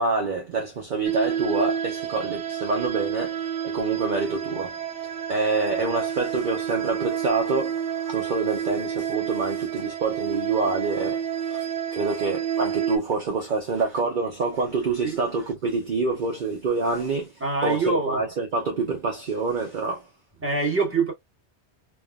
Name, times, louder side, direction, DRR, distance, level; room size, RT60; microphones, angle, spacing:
voice 1, 0.0-4.7 5.3-20.1, right 4 dB, 50° right, 0.7 m, -27 dB
sound 1, 1.0-13.0, right 8 dB, 80° right, 0.9 m, -29 dB
voice 2, 17.4-18.2 20.4-21.1, right 3 dB, 10° right, 1.2 m, -24 dB
3.4 x 2.3 x 2.2 m
omnidirectional pair, 1.2 m